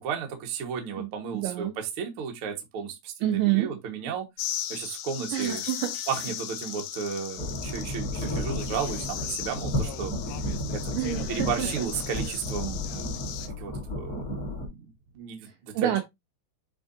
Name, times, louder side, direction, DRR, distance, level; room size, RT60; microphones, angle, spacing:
voice 1, 0.0-4.2 4.7-5.6 6.1-10.1 10.7-10.9 11.3-14.9 15.1-15.9, right 7 dB, 55° right, 1.5 m, -34 dB
voice 2, 1.0-1.7 3.2-3.8 5.3-6.0 11.0-11.9 15.4-16.0, right 13 dB, 75° right, 2.0 m, -28 dB
sound 1, 4.4-13.5, left 11 dB, 80° left, 2.6 m, -37 dB
sound 2, 5.4-6.4 8.2-8.9 9.6-9.7 11.3-11.4, left 4 dB, 60° left, 3.5 m, -45 dB
sound 3, 7.4-14.7, left 1 dB, 40° left, 1.3 m, -33 dB
10.5 x 3.7 x 2.7 m
omnidirectional pair, 4.6 m